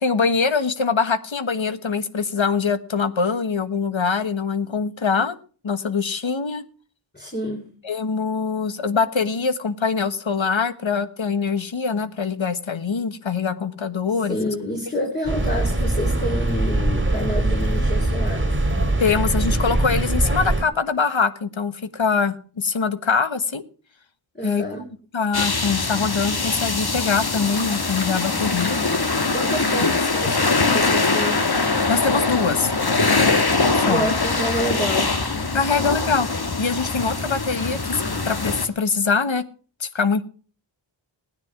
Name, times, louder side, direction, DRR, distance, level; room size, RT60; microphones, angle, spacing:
voice 1, 0.0-5.4 5.6-6.6 7.8-14.4 19.0-23.6 24.4-24.6 25.1-28.8 31.9-32.7 33.8-34.1 35.5-39.4 39.8-40.2, left 5 dB, 70° left, 13 dB, 1.4 m, -23 dB
voice 2, 7.1-7.7 14.3-18.5 24.4-24.9 29.3-31.5 33.8-35.1, equal, 20° left, 0 dB, 3.7 m, -28 dB
sound 1, 15.2-20.6, right 1 dB, 25° right, 2.7 m, -22 dB
sound 2, 25.3-38.7, left 3 dB, 50° left, 1.7 m, -22 dB
16.5 x 9.7 x 5.9 m, 0.41 s
wide cardioid pair, 50°, 48 cm